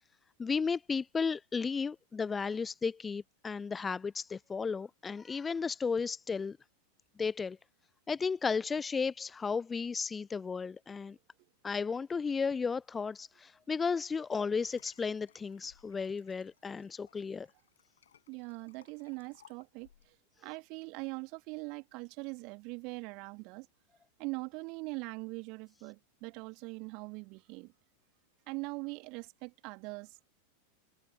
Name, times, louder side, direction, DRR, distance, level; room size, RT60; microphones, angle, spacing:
voice 1, 0.4-6.6 7.2-7.6 8.1-11.2 11.6-17.5, left 5 dB, 15° left, 0.3 m, -34 dB
Liquid, 13.9-20.2 20.8-20.9, left 9 dB, 65° left, 7.3 m, -64 dB
voice 2, 18.3-23.7 24.2-27.7 28.5-30.3, right 29 dB, 45° right, 2.0 m, -42 dB
figure-of-eight pair, 90°, 0 cm